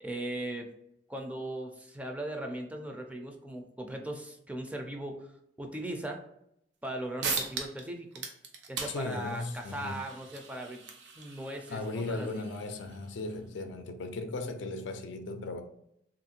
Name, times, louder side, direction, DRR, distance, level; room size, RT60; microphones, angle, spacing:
voice 1, 0.0-0.7 1.1-5.3 5.6-6.2 6.8-8.3 8.7-10.8 11.2-12.4, right 1 dB, 10° right, 0.3 m, -38 dB
sound 1, 6.8-6.9 7.2-7.9 8.1-13.3, right 5 dB, 75° right, 0.6 m, -39 dB
voice 2, 8.9-10.0 11.7-15.6, left 2 dB, 85° left, 0.4 m, -37 dB
3.0 x 2.5 x 2.7 m
head